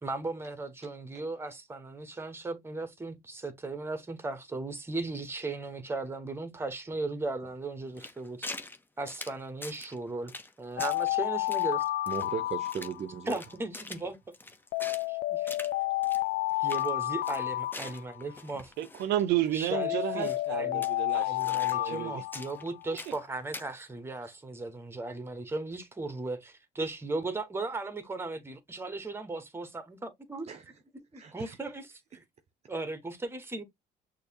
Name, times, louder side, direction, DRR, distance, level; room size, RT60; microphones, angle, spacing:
voice 1, 0.0-8.5 9.0-10.3 10.6-11.8 13.3-14.2 15.1-15.6 16.6-18.7 19.5-20.8 21.1-30.5 31.1-32.2 32.7-33.6, right 3 dB, 15° right, 1.2 m, -37 dB
sound 1, 8.0-8.8 9.1-10.0 10.3-10.5 10.8-11.1 11.5-13.0 13.3-15.1 15.5-15.7 16.0-16.2 16.5-16.9 17.2-19.1 19.4-19.5 20.2-20.5 20.8-22.0 22.3-23.2 23.5-23.7, left 2 dB, 10° left, 0.8 m, -44 dB
Alarm, 10.8-13.4 14.7-18.4 19.7-22.9, left 17 dB, 60° left, 0.4 m, -31 dB
voice 2, 12.1-13.4 30.4-30.6 31.1-31.6, right 7 dB, 40° right, 0.8 m, -37 dB
voice 3, 18.8-22.2, right 12 dB, 80° right, 0.7 m, -31 dB
6.4 x 2.9 x 2.9 m
cardioid pair, 110°, 17 cm